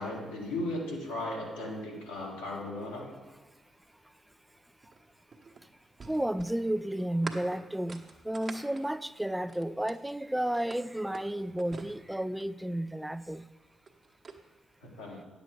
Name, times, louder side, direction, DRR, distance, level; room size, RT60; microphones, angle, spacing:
voice 1, 0.0-3.1 14.8-15.2, left 1 dB, 85° left, -6 dB, 1.9 m, -36 dB
sound 1, 4.8-10.1 10.5-12.6 13.6-14.4, right 4 dB, 45° right, 1.1 m, -46 dB
voice 2, 6.0-13.5, right 1 dB, 5° right, 13 dB, 0.4 m, -32 dB
9.8 x 7.1 x 5.1 m, 1.2 s
hypercardioid pair, 40°, 0 cm